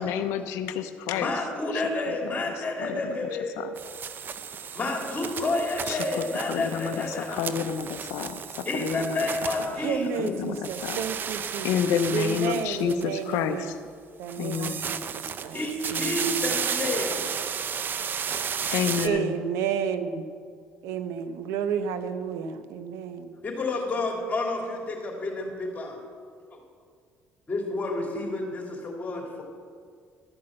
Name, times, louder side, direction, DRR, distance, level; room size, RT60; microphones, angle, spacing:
voice 1, 0.0-1.3 1.7-3.2 3.6-3.7 5.9-9.2 9.6-9.7 10.2-11.0 11.6-13.8 14.4-14.8 18.7-19.3, left 8 dB, 85° left, 9 dB, 0.6 m, -30 dB
voice 2, 1.2-3.6 4.7-7.5 8.6-10.1 15.5-17.3 23.4-26.0 26.5-26.6 27.5-29.4, left 2 dB, 30° left, 0 dB, 2.9 m, -30 dB
sound 1, 3.8-10.3 10.6-13.4 14.2-19.1, right 7 dB, 45° right, 0.6 m, -33 dB
voice 3, 9.8-13.7 14.2-15.6 15.9-16.4 19.0-20.3 20.8-23.3, right 7 dB, 85° right, 10 dB, 0.8 m, -31 dB
13.0 x 6.0 x 7.6 m, 2.1 s
cardioid pair, 95°, 5 cm